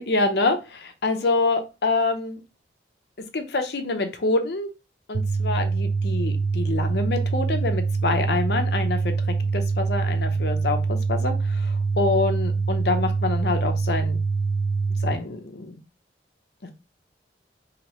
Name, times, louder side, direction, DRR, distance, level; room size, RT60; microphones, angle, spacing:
voice 1, 0.0-2.4 3.3-4.7 5.1-9.1 9.5-14.2 15.0-15.8, left 3 dB, 65° left, 7 dB, 0.6 m, -26 dB
sound 1, 5.1-15.1, right 4 dB, 65° right, 0.5 m, -24 dB
2.9 x 2.8 x 4.1 m, 0.29 s
head